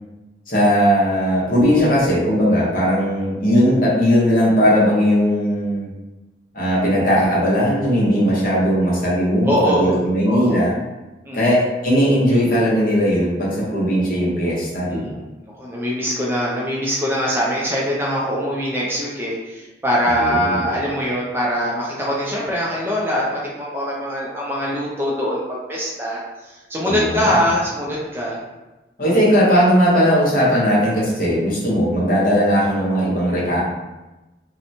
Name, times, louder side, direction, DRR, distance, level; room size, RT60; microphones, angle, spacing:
voice 1, 0.5-5.9 6.5-10.7 11.3-15.2 20.0-20.6 26.9-27.3 29.0-33.6, equal, 50° left, -6 dB, 0.8 m, -18 dB
voice 2, 9.4-9.9 10.3-10.7 11.3-11.5 14.7-15.1 15.6-28.4, equal, 15° right, -5 dB, 0.4 m, -23 dB
2.9 x 2.1 x 2.6 m, 1.1 s
head